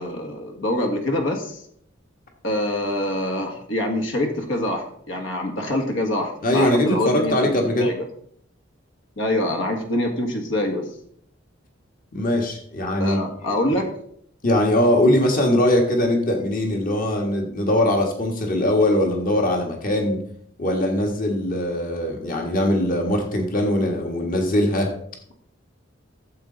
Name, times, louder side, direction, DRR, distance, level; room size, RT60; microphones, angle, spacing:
voice 1, 0.0-1.6 2.4-7.3 7.8-8.1 9.2-10.9 13.0-13.9, left 1 dB, 75° left, 3 dB, 1.7 m, -25 dB
voice 2, 6.4-7.9 12.1-13.2 14.4-20.2 20.6-24.9, left 1 dB, 45° left, 2 dB, 1.6 m, -21 dB
14.0 x 7.5 x 3.9 m, 0.67 s
head